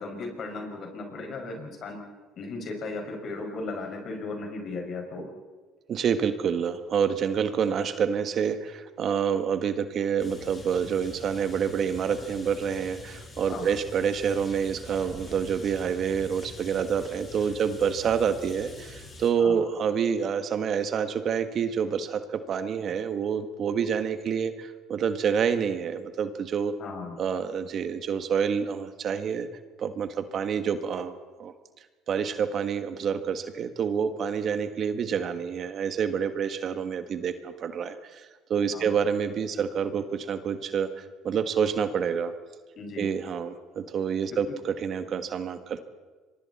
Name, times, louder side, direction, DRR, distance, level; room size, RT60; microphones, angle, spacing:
voice 1, 0.0-2.0 2.4-5.3 13.5-13.7 19.4-19.6 26.8-27.2 38.7-38.9 42.8-43.1, left 3 dB, 50° left, 2 dB, 6.0 m, -36 dB
voice 2, 5.9-26.7 27.2-29.5 29.8-31.5 32.1-42.3 43.0-45.8, right 7 dB, 50° right, 9 dB, 1.5 m, -28 dB
sound 1, 10.2-19.3, left 3 dB, 35° left, 6.8 m, -45 dB
27.0 x 23.5 x 4.3 m, 1.4 s
supercardioid pair, 80°, 0 cm